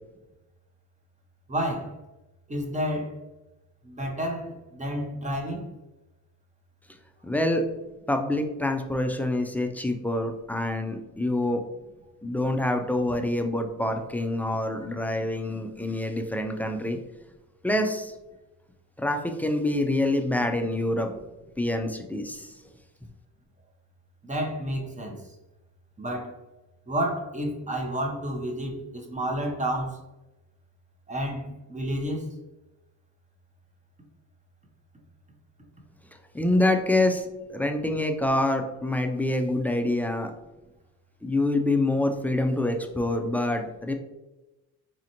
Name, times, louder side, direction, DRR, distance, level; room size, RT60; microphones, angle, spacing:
voice 1, 1.5-1.9 2.5-3.2 3.8-5.6 24.2-25.2 26.0-26.4 26.9-30.0 31.1-32.3, equal, 20° right, 2 dB, 0.8 m, -30 dB
voice 2, 7.2-7.6 8.1-11.6 12.2-17.0 17.6-18.1 19.0-21.2 21.6-22.5 36.3-40.3 41.2-43.9, left 1 dB, 5° left, 4 dB, 0.3 m, -26 dB
4.2 x 2.4 x 2.9 m, 1.0 s
supercardioid pair, 70°, 40 cm